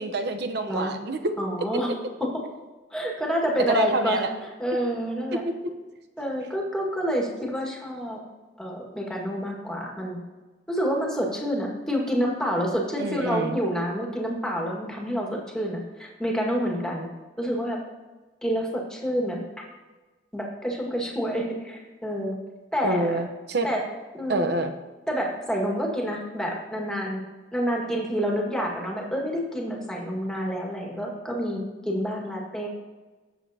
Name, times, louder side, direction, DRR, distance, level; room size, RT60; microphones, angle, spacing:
voice 1, 0.0-1.3 3.7-4.3 13.0-13.6 22.8-23.7 24.3-24.7, right 2 dB, 65° right, 7 dB, 0.9 m, -26 dB
voice 2, 1.4-1.9 2.2-2.4 2.9-4.2 4.6-5.4 6.2-8.2 8.6-10.2 10.7-17.1 17.4-17.8 18.4-19.4 20.3-22.4 22.7-23.2 23.6-23.8 24.1-24.5 25.1-27.2 27.5-32.7, equal, 5° left, -2 dB, 1.9 m, -28 dB
17.5 x 7.4 x 2.9 m, 1.2 s
head